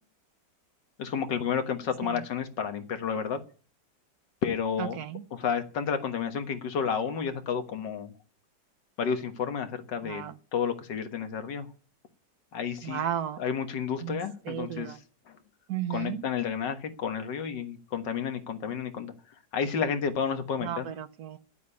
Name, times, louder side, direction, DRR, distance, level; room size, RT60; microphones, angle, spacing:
voice 1, 1.0-3.4 4.4-5.0 5.3-8.1 9.0-10.2 10.5-11.7 12.5-13.0 13.4-15.0 15.9-19.1 19.5-20.9, left 7 dB, 80° left, 8 dB, 2.1 m, -31 dB
voice 2, 4.8-5.2 10.0-10.4 12.8-13.4 14.0-15.0 15.7-16.2 20.6-21.4, right 10 dB, 65° right, 13 dB, 1.3 m, -34 dB
10.0 x 8.4 x 9.7 m, 0.39 s
omnidirectional pair, 1.9 m